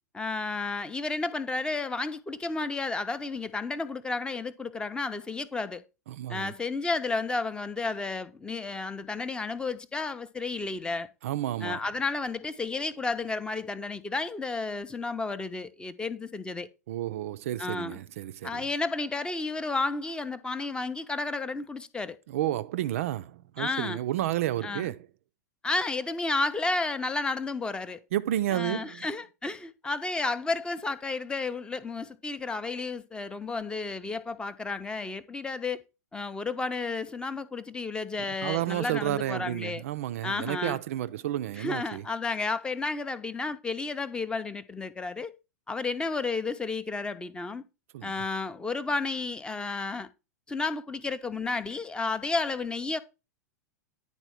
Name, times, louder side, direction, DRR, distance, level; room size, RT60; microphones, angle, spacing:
voice 1, 0.1-5.8 6.3-11.1 11.6-16.7 17.6-18.0 18.4-22.2 23.6-24.0 24.6-24.9 25.6-28.0 28.5-35.8 36.1-39.8 40.2-40.8 41.6-45.3 45.7-47.6 48.0-50.1 50.5-53.0, left 3 dB, 10° left, 0.5 m, -32 dB
voice 2, 6.1-6.5 11.2-11.8 16.9-18.6 22.3-25.1 28.1-29.1 38.4-42.0 47.9-48.1, right 13 dB, 50° right, 0.4 m, -31 dB
9.9 x 4.1 x 4.5 m
figure-of-eight pair, 95°, 9 cm